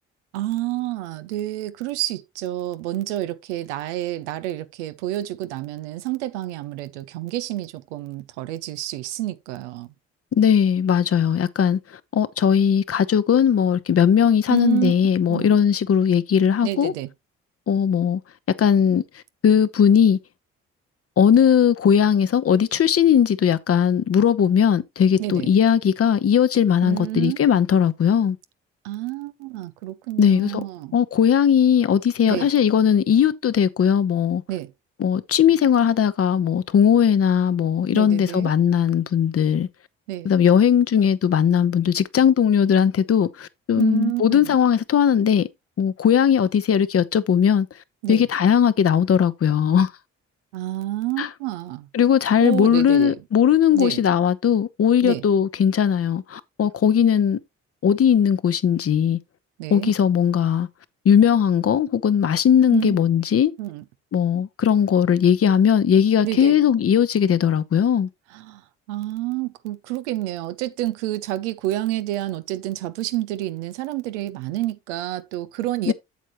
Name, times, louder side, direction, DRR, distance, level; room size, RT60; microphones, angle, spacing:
voice 1, 0.3-9.9 14.5-14.9 15.3-15.6 16.6-17.1 25.2-25.5 26.8-27.4 28.8-30.9 32.3-32.5 34.5-34.7 37.9-38.5 40.1-40.3 43.8-44.5 48.0-48.3 50.5-51.9 52.4-53.2 53.7-54.0 55.0-55.2 59.6-59.9 62.7-63.0 63.6-63.8 66.2-66.6 68.3-68.6 68.9-75.9, right 15 dB, 90° right, 0.7 m, -29 dB
voice 2, 10.3-11.8 12.1-16.9 17.7-18.2 18.6-19.0 19.4-20.2 21.2-28.4 30.2-30.6 30.9-34.4 35.0-39.7 40.2-45.5 45.8-47.7 48.1-49.9 51.2-51.3 51.9-57.4 57.8-59.2 59.7-60.7 61.0-63.5 64.1-68.1 75.9-76.0, left 8 dB, 45° left, 0.9 m, -18 dB
8.2 x 7.5 x 3.0 m
hypercardioid pair, 50°, 34 cm